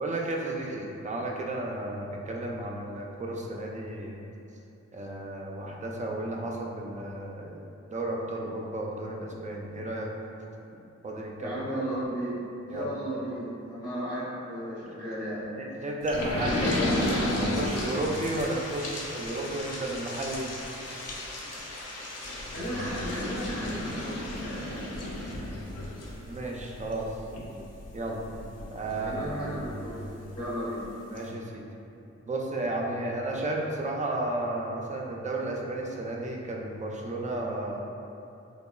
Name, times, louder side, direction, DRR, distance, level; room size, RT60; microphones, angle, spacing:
voice 1, 0.0-4.2 4.9-7.6 7.9-10.1 11.0-11.6 12.7-12.9 15.6-20.5 26.3-27.2 27.9-28.2 28.7-29.2 31.1-31.6 32.3-37.8, right 1 dB, 25° right, -1 dB, 0.4 m, -33 dB
voice 2, 11.4-12.3 12.7-15.5 16.3-16.7 22.3-25.3 28.9-30.8, right 1 dB, 80° left, -12 dB, 0.9 m, -35 dB
sound 1, 16.1-30.4 30.8-30.9 31.2-31.3, left 1 dB, 60° left, 0.5 m, -34 dB
2.9 x 2.1 x 2.2 m, 2.7 s
cardioid pair, 45°, 29 cm